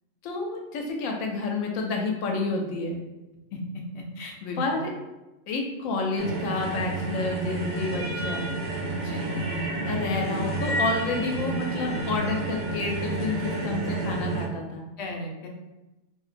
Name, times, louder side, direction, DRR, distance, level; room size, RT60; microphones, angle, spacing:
voice 1, 0.2-3.0 4.6-4.9 5.5-8.5 9.9-14.9, left 3 dB, 85° left, 1 dB, 1.0 m, -29 dB
voice 2, 3.9-4.8 9.0-9.3 15.0-15.5, left 1 dB, 65° left, 1 dB, 0.8 m, -36 dB
sound 1, 6.2-14.5, right 2 dB, 60° right, 0.4 m, -30 dB
2.8 x 2.6 x 2.5 m, 1.0 s
omnidirectional pair, 1.4 m